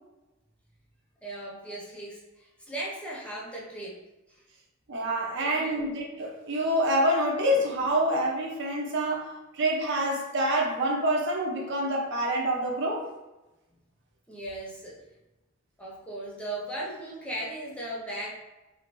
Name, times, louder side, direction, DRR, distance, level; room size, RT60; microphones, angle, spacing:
voice 1, 1.2-4.0 4.3-4.4 5.4-5.9 13.7-13.8 14.3-15.0 15.8-18.4, right 1 dB, 5° left, -5 dB, 0.5 m, -37 dB
voice 2, 4.9-13.1, right 1 dB, 60° right, -1 dB, 0.7 m, -27 dB
2.8 x 2.5 x 3.0 m, 1.0 s
head